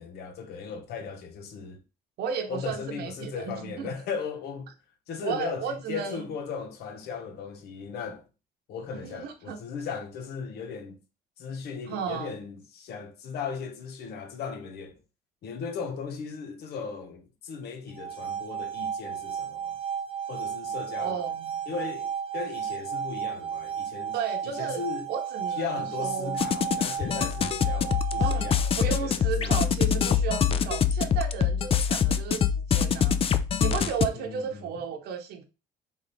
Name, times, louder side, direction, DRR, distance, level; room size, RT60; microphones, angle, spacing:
voice 1, 0.0-1.8 2.5-4.7 5.1-8.2 8.7-11.0 11.4-14.9 15.4-19.8 20.3-21.2 21.7-24.2 24.4-25.1 25.6-29.6 34.1-34.6, left 5 dB, 70° left, 1.1 m, -37 dB
voice 2, 2.2-3.9 5.2-6.2 8.9-9.6 11.9-12.3 21.0-21.6 24.1-24.8 25.1-26.4 28.2-28.5 28.8-33.2 33.6-35.4, right 7 dB, 70° right, 0.8 m, -34 dB
sound 1, 17.9-28.9, right 8 dB, 35° right, 1.0 m, -33 dB
sound 2, 26.4-34.1, left 8 dB, 35° left, 0.4 m, -25 dB
3.6 x 3.1 x 4.1 m
cardioid pair, 110°, 17 cm